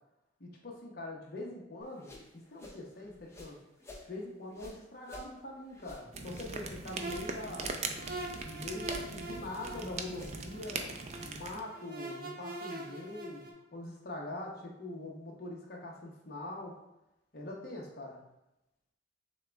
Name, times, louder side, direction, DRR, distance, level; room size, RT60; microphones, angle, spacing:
voice 1, 0.4-3.6 4.1-7.8 8.4-10.9 11.2-13.5 13.7-16.8 17.3-18.2, left 1 dB, 55° left, -1 dB, 0.9 m, -43 dB
sound 1, 1.8-4.1 4.5-7.3 7.5-8.5 8.8-10.6, left 1 dB, 15° left, 0.6 m, -51 dB
sound 2, 6.1-11.6, right 4 dB, 35° right, 0.4 m, -41 dB
sound 3, 6.9-13.5, right 2 dB, 55° right, 0.8 m, -44 dB
6.4 x 2.3 x 3.4 m, 0.91 s
head